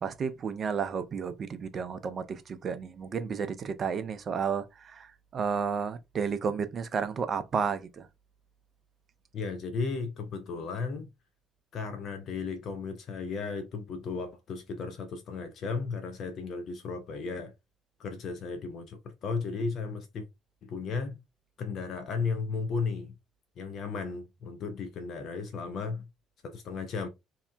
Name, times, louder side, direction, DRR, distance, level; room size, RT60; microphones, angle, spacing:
voice 1, 0.0-8.1, right 6 dB, 45° right, 0.4 m, -32 dB
voice 2, 9.3-11.1 11.7-17.5 18.0-20.3 20.6-21.2 21.6-23.2 23.6-26.1 26.4-27.1, left 4 dB, 50° left, 0.4 m, -35 dB
2.7 x 2.0 x 2.4 m
figure-of-eight pair, 45°, 0 cm